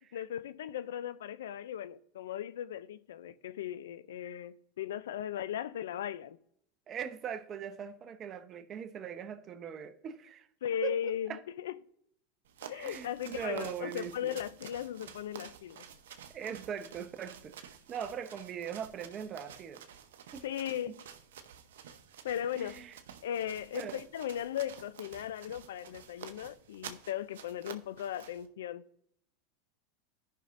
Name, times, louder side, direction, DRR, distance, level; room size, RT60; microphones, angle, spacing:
voice 1, 0.1-6.4 10.6-11.7 12.7-15.8 20.4-21.0 22.2-22.9 23.2-28.9, left 10 dB, 85° left, 0.4 m, -37 dB
voice 2, 6.9-10.5 10.8-11.4 12.7-14.4 16.3-19.8 20.3-20.4 22.5-22.9 23.7-24.0, right 8 dB, 35° right, 0.8 m, -40 dB
sound 1, 12.5-28.5, right 8 dB, 80° right, 0.8 m, -50 dB
14.0 x 5.7 x 2.5 m
hypercardioid pair, 105°, 0 cm